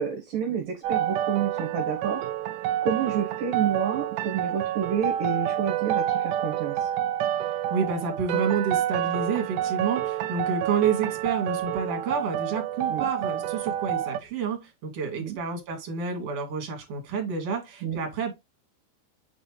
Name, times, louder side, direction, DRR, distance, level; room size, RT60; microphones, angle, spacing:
voice 1, 0.0-2.3 2.8-6.9 12.9-13.0 15.2-15.4 17.8-18.0, right 7 dB, 65° right, 2.7 m, -29 dB
sound 1, 0.8-14.2, right 11 dB, 90° right, 1.8 m, -28 dB
voice 2, 7.7-18.3, right 5 dB, 45° right, 3.0 m, -29 dB
8.0 x 4.2 x 3.1 m
omnidirectional pair, 4.7 m